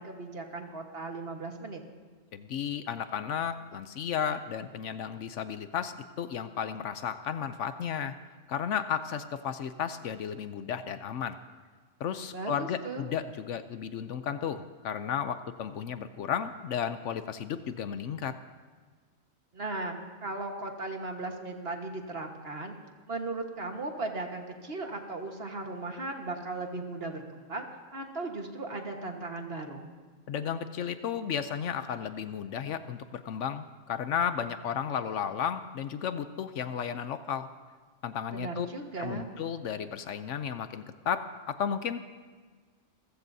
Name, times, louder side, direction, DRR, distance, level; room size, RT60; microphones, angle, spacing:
voice 1, 0.0-1.8 12.3-13.1 19.5-22.7 23.1-27.7 27.9-29.9 38.3-39.3, right 2 dB, 50° right, 3 dB, 1.6 m, -37 dB
voice 2, 2.3-8.1 8.5-11.4 12.0-18.4 30.3-37.5 38.0-38.7 39.0-42.0, left 8 dB, 70° left, 11 dB, 0.9 m, -33 dB
27.5 x 15.0 x 2.7 m, 1.5 s
omnidirectional pair, 1.4 m